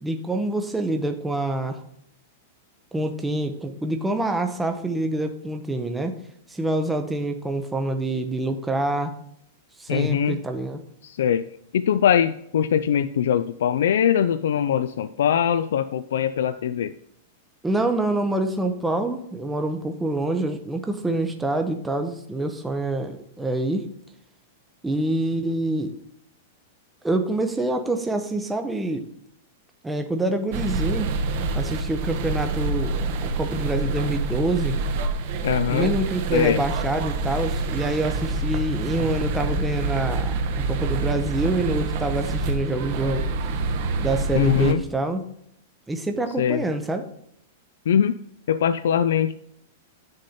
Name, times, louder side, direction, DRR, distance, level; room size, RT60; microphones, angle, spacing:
voice 1, 0.0-1.8 2.9-6.1 6.5-9.2 9.8-10.8 17.6-23.9 24.8-25.9 27.0-29.1 29.8-31.1 31.5-34.8 35.7-43.2 44.0-45.2 45.9-47.0, right 2 dB, 5° right, 5 dB, 0.6 m, -26 dB
voice 2, 9.9-10.4 11.0-11.5 11.7-16.9 35.4-35.9 36.3-36.6 44.3-44.8 46.4-46.6 47.9-48.2 48.5-49.3, left 9 dB, 85° left, 11 dB, 0.4 m, -22 dB
sound 1, 30.5-44.7, right 3 dB, 45° right, 0.9 m, -27 dB
9.7 x 6.5 x 4.2 m, 0.72 s
supercardioid pair, 165°, 0 cm